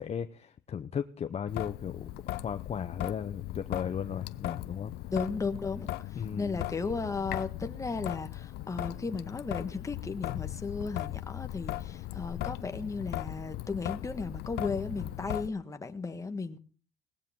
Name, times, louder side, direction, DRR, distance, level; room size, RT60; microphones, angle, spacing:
voice 1, 0.0-4.9 6.1-6.6, left 8 dB, 40° left, 8 dB, 0.7 m, -36 dB
Traffic noise roadway noise / Drip / Trickle dribble, 1.5-15.5, left 15 dB, 75° left, 0.8 m, -38 dB
voice 2, 5.1-5.9 6.1-16.6, left 4 dB, 20° left, 7 dB, 1.4 m, -35 dB
18.0 x 16.5 x 3.6 m, 0.38 s
cardioid pair, 110°, 17 cm